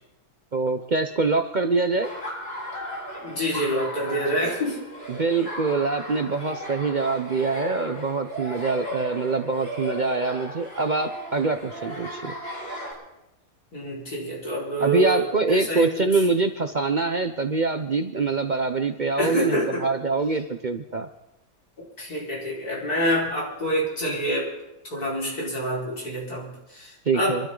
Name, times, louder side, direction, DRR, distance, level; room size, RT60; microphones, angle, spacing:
voice 1, 0.5-2.1 5.1-12.3 14.8-21.1 27.1-27.5, right 3 dB, 40° right, 7 dB, 0.7 m, -24 dB
Laughter, 2.0-12.9, equal, 40° left, 4.5 m, -36 dB
voice 2, 3.2-4.8 13.7-15.9 19.2-19.8 22.0-24.5 24.8-27.4, equal, 90° left, -5 dB, 5.5 m, -27 dB
26.0 x 13.0 x 3.9 m, 0.90 s
omnidirectional pair, 1.6 m